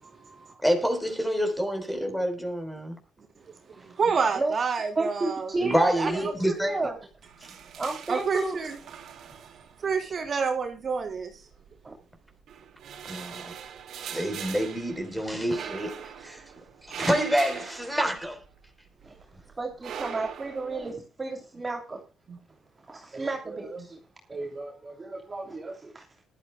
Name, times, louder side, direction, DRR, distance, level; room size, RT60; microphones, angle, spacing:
voice 1, 0.0-0.6 3.7-4.0 4.3-4.6 4.9-6.3 6.6-6.9 7.8-8.6 11.8-11.9 15.2-15.3 19.0-19.1 19.6-22.0 22.9-24.0 24.3-26.0, right 2 dB, 25° right, 2.9 m, -33 dB
voice 2, 0.6-3.0 5.6-6.7 13.1-13.5 14.1-15.9 16.2-16.4 16.9-18.4, equal, 5° left, 4.0 m, -27 dB
voice 3, 4.0-5.5 6.0-6.3 8.1-8.7 9.8-11.3 22.3-22.4, right 5 dB, 45° right, 3.2 m, -28 dB
sound 1, 5.7-6.2 6.5-6.6 7.0-10.1 11.0-11.9 12.4-18.7 19.0-20.9, right 8 dB, 70° right, 2.8 m, -41 dB
20.5 x 12.5 x 2.2 m
cardioid pair, 90°, 0 cm